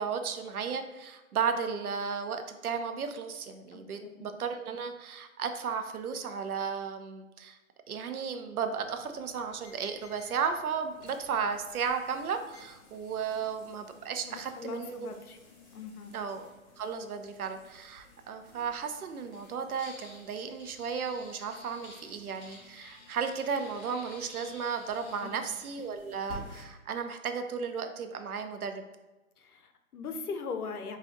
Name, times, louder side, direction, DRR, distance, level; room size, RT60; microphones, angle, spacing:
voice 1, 0.0-7.6 7.9-15.1 16.1-16.5 16.8-28.8, right 6 dB, 80° right, 7 dB, 0.6 m, -34 dB
voice 2, 3.7-4.3 14.2-15.4 15.7-16.2 25.2-25.5 29.4-31.0, left 4 dB, 85° left, 7 dB, 0.7 m, -40 dB
sound 1, 8.7-26.6, left 2 dB, 15° left, 0.9 m, -53 dB
4.7 x 2.4 x 2.6 m, 1.1 s
hypercardioid pair, 145°, 43 cm